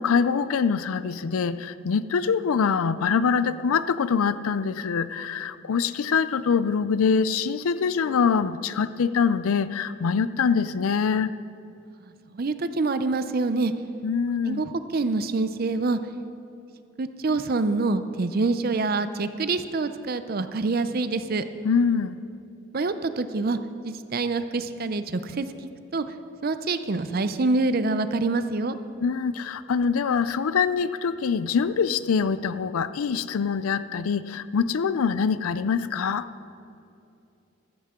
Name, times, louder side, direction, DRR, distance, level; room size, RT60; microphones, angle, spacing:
voice 1, 0.0-11.3 14.0-14.6 21.6-22.2 29.0-36.3, left 6 dB, 85° left, 15 dB, 0.4 m, -24 dB
voice 2, 12.3-13.7 14.5-16.0 17.0-21.4 22.7-23.6 23.8-25.5 25.9-26.0 26.4-28.8, right 3 dB, 45° right, 11 dB, 0.5 m, -26 dB
15.0 x 13.5 x 3.7 m, 2.7 s
head